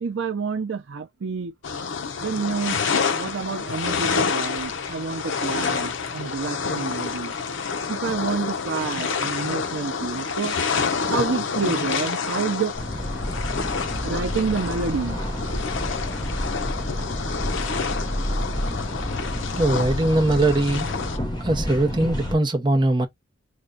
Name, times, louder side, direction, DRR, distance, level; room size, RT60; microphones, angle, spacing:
voice 1, 0.0-1.5 2.2-2.8 3.1-7.3 7.9-10.6 11.0-12.7 14.0-15.2, right 5 dB, 80° right, 0.5 m, -28 dB
sound 1, 1.6-21.2, left 5 dB, 80° left, 0.7 m, -28 dB
sound 2, 12.7-22.3, equal, 20° left, 0.8 m, -29 dB
voice 2, 19.5-20.9 21.4-23.1, right 2 dB, 25° right, 0.7 m, -21 dB
3.4 x 2.2 x 3.8 m
head